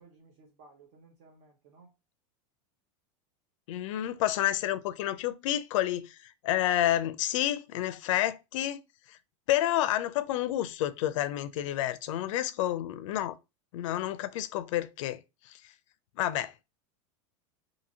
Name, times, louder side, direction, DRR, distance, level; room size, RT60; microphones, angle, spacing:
voice 1, 0.0-1.9 4.0-4.3 12.9-13.0, right 3 dB, 60° right, 0.8 m, -58 dB
voice 2, 3.7-8.8 9.1-9.2 9.5-13.3 13.7-15.2 16.2-16.5, left 13 dB, 80° left, 0.4 m, -29 dB
2.8 x 2.6 x 2.7 m
supercardioid pair, 140°, 16 cm